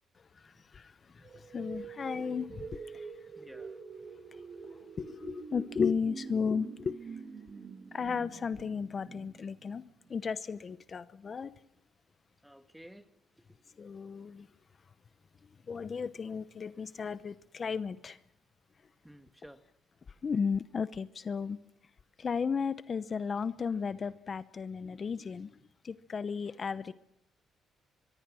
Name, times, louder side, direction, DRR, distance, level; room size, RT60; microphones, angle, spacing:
sound 1, 1.2-10.2, right 5 dB, 45° right, 1.9 m, -46 dB
voice 1, 1.5-3.1 5.0-7.0 7.9-9.8 10.1-11.5 13.8-14.5 15.7-18.2 20.2-21.6 22.2-25.5 25.8-26.9, left 6 dB, 40° left, 13 dB, 0.8 m, -34 dB
voice 2, 3.4-3.7 12.4-13.1 19.0-19.6, equal, 5° right, 9 dB, 1.5 m, -52 dB
23.5 x 23.5 x 6.3 m, 0.82 s
cardioid pair, 90°, 0 cm